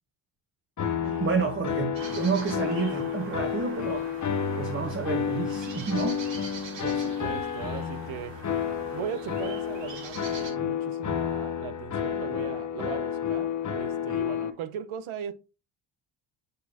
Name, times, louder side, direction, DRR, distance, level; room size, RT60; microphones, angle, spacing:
sound 1, 0.8-14.5, left 8 dB, 35° left, 1.0 m, -31 dB
voice 1, 1.0-4.0 4.5-6.2, right 5 dB, 25° right, 1.1 m, -29 dB
sound 2, 1.9-10.5, right 4 dB, 60° right, 3.1 m, -43 dB
voice 2, 6.8-8.4 8.9-15.3, right 9 dB, 75° right, 0.9 m, -38 dB
6.6 x 6.2 x 2.8 m
cardioid pair, 95°, 49 cm